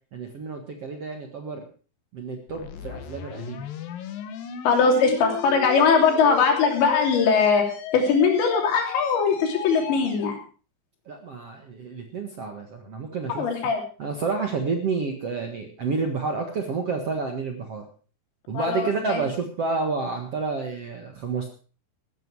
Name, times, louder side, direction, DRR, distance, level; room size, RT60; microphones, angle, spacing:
voice 1, 0.1-1.7 2.1-3.7 11.1-13.5 14.0-17.9 18.5-21.5, right 4 dB, 55° right, 4 dB, 1.8 m, -29 dB
sound 1, 2.5-10.3, left 9 dB, 65° left, 2.8 m, -36 dB
voice 2, 4.7-7.7 7.9-10.4 13.4-13.8 18.5-19.2, left 5 dB, 85° left, 2 dB, 5.4 m, -20 dB
14.5 x 13.0 x 4.7 m, 0.38 s
omnidirectional pair, 5.0 m